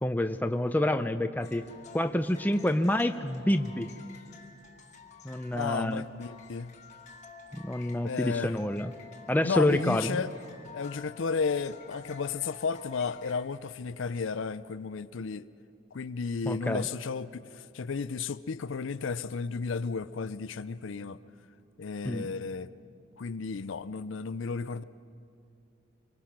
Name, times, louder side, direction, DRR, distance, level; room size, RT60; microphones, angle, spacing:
voice 1, 0.0-1.6 1.9-3.9 5.2-6.1 7.5-8.9 9.3-10.2 16.5-16.9 22.0-22.3, left 1 dB, 10° left, 8 dB, 0.5 m, -28 dB
sound 1, 1.4-13.4, left 4 dB, 35° left, 1.5 m, -50 dB
voice 2, 5.5-6.7 8.0-8.5 9.4-10.3 10.7-15.5 15.9-21.2 21.8-22.7 23.2-24.8, left 5 dB, 65° left, 15 dB, 0.5 m, -33 dB
25.5 x 23.5 x 5.9 m, 2.6 s
head